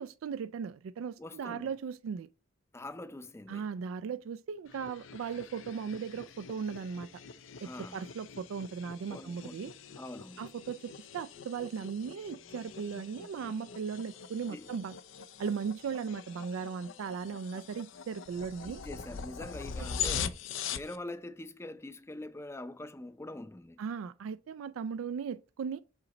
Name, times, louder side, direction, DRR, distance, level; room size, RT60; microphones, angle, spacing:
voice 1, 0.0-2.3 3.5-7.1 7.6-9.7 10.4-15.0 15.4-18.8 19.8-20.1 23.8-25.8, right 6 dB, 90° right, 0.3 m, -37 dB
voice 2, 1.2-1.7 2.7-3.7 7.6-8.0 9.1-9.6 10.0-10.4 14.5-14.7 18.7-20.3 20.7-23.8, left 2 dB, 15° left, 0.5 m, -44 dB
sound 1, 4.7-21.0, left 7 dB, 70° left, 0.5 m, -43 dB
5.7 x 4.0 x 5.2 m
head